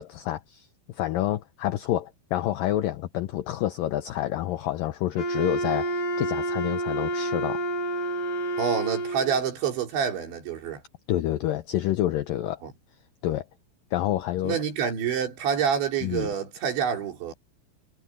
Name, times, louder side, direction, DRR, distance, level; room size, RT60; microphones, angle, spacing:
voice 1, 0.0-7.6 11.1-12.6 13.2-13.5 13.9-14.6 16.0-16.3, left 13 dB, 85° left, 2.0 m, -28 dB
Wind instrument woodwind instrument, 5.2-9.5, right 1 dB, 45° left, 2.5 m, -29 dB
voice 2, 8.6-10.8 12.6-12.7 14.4-17.3, right 7 dB, 85° right, 6.4 m, -27 dB
omnidirectional pair, 5.1 m